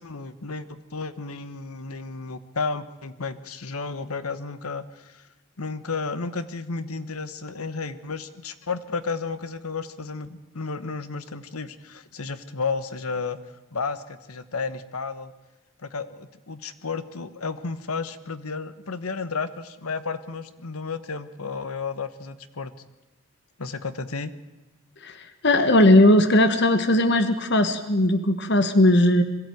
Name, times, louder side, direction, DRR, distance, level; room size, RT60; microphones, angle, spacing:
voice 1, 0.0-5.2 5.6-13.4 13.7-15.3 15.8-22.7 23.6-24.3, left 4 dB, 85° left, 13 dB, 1.1 m, -32 dB
voice 2, 25.0-29.2, left 1 dB, 50° left, 10 dB, 1.3 m, -18 dB
22.0 x 14.0 x 9.2 m, 1.1 s
head